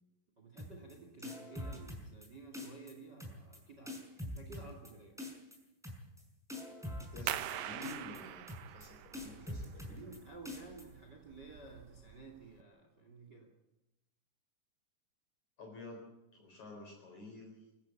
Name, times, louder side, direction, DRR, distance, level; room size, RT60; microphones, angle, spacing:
voice 1, 0.4-5.2 9.1-9.5 9.9-13.5, right 3 dB, 30° right, 5 dB, 2.4 m, -53 dB
sound 1, 0.6-0.9 1.2-2.3 2.5-2.9 3.2-3.6 3.9-4.9 5.2-5.6 5.8-6.2 6.5-7.5 7.8-8.2 8.5-8.9 9.1-10.2 10.5-10.8, left 1 dB, ahead, 5.0 m, -43 dB
voice 2, 7.1-10.1 15.6-16.0 16.3-17.7, left 2 dB, 40° left, 1 dB, 5.0 m, -51 dB
sound 2, 7.3-12.6, right 13 dB, 90° right, 1.9 m, -44 dB
24.0 x 15.5 x 8.4 m, 0.95 s
omnidirectional pair, 5.2 m